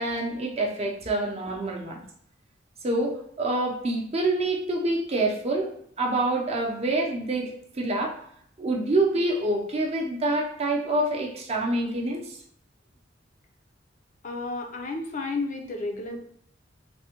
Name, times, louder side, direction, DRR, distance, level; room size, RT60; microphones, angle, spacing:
voice 1, 0.0-2.0 2.8-5.7 6.0-8.2 8.6-12.4, right 2 dB, 35° right, 1 dB, 0.6 m, -26 dB
voice 2, 14.2-16.2, left 3 dB, 45° left, 3 dB, 0.4 m, -32 dB
3.4 x 2.1 x 2.8 m, 0.68 s
head